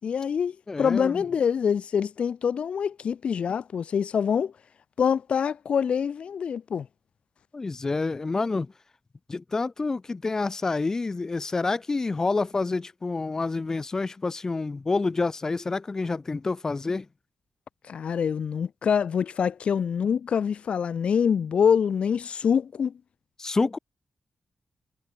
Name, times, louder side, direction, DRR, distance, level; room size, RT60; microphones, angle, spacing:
voice 1, 0.0-4.5 5.0-6.9 17.9-22.9, left 7 dB, 60° left, 6.0 m, -25 dB
voice 2, 0.7-1.2 7.5-8.7 9.3-17.1 23.4-23.8, left 3 dB, 25° left, 6.0 m, -28 dB
wide cardioid pair, 150°, 2 cm